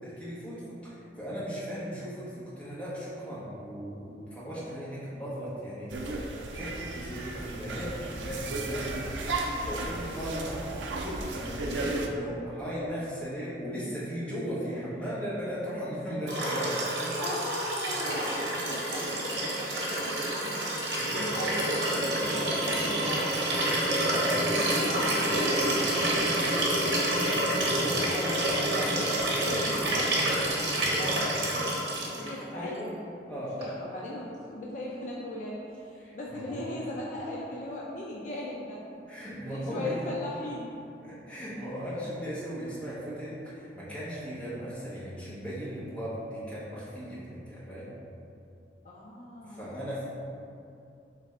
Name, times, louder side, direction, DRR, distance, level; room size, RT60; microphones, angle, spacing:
voice 1, 0.0-9.0 9.6-10.7 11.0-17.2 21.0-21.1 24.1-24.4 27.4-28.0 32.5-32.9 33.3-33.6 36.0-36.6 39.1-39.9 41.0-47.9 49.5-50.0, equal, 5° left, -10 dB, 1.0 m, -37 dB
sound 1, 5.9-12.1, right 2 dB, 90° right, 0.4 m, -34 dB
Liquid, 16.3-32.3 33.6-33.7, right 1 dB, 75° right, 0.8 m, -28 dB
voice 2, 17.2-20.6 21.1-23.8 24.2-26.7 27.2-32.9 33.6-38.8 39.4-40.7 48.8-49.8, left 1 dB, 45° left, -4 dB, 0.4 m, -38 dB
3.3 x 3.2 x 3.6 m, 2.6 s
head